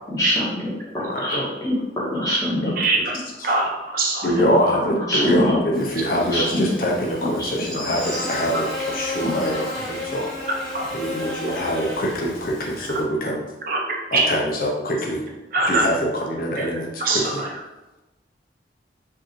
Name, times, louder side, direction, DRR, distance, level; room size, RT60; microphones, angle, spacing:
voice 1, 0.1-0.4 0.9-2.7 4.2-5.8 6.3-6.8 7.2-7.5 9.2-9.4, left 1 dB, 20° left, -7 dB, 1.2 m, -24 dB
voice 2, 1.1-1.5 2.6-2.7 4.2-10.3 10.9-13.4 14.1-15.2 15.7-17.4, equal, 50° left, -1 dB, 0.5 m, -24 dB
voice 3, 2.8-3.1 3.4-4.5 10.7-10.8 13.7-13.8 14.1-14.3 15.5-15.9 16.5-16.7 17.0-17.5, right 3 dB, 50° right, -1 dB, 0.6 m, -22 dB
Buzz, 5.7-13.0, left 1 dB, 5° left, 0.7 m, -32 dB
4.3 x 2.5 x 3.0 m, 1.0 s
head